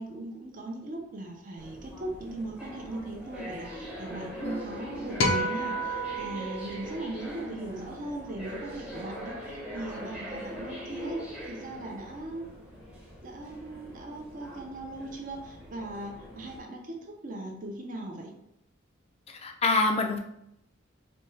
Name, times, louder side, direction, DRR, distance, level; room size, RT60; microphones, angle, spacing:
voice 1, 0.0-11.2 11.5-12.5 13.2-18.3, right 2 dB, 40° right, 1 dB, 0.6 m, -39 dB
sound 1, 1.6-16.6, equal, 5° right, 0.7 m, -42 dB
sound 2, 5.2-7.7, equal, 80° left, 0.6 m, -31 dB
voice 2, 19.3-20.2, left 3 dB, 30° left, 4 dB, 0.4 m, -26 dB
4.2 x 2.3 x 3.2 m, 0.79 s
head